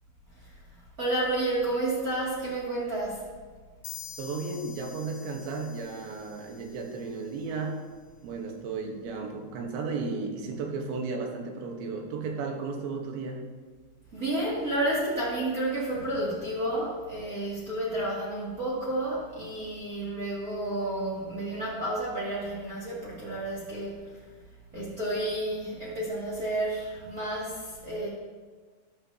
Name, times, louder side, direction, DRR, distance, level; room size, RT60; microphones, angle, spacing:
voice 1, 1.0-3.3 14.1-24.2 24.7-28.1, right 1 dB, 30° right, -6 dB, 1.8 m, -31 dB
sound 1, 3.8-7.4, left 9 dB, 90° left, 3.3 m, -47 dB
voice 2, 4.2-7.8 8.2-13.5, right 4 dB, 90° right, 3 dB, 3.5 m, -34 dB
13.5 x 12.0 x 2.8 m, 1.4 s
omnidirectional pair, 5.0 m